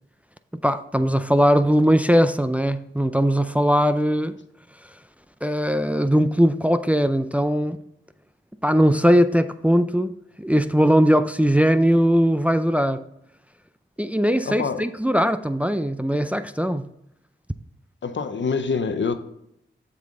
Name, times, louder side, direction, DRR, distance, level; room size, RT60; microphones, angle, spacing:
voice 1, 0.6-4.3 5.4-7.8 8.6-10.1 10.4-13.0 14.0-16.9, equal, 5° right, 0.4 m, -20 dB
voice 2, 14.5-14.9 18.0-19.1, left 5 dB, 70° left, 0.7 m, -25 dB
7.6 x 5.7 x 3.7 m
cardioid pair, 45°, 20 cm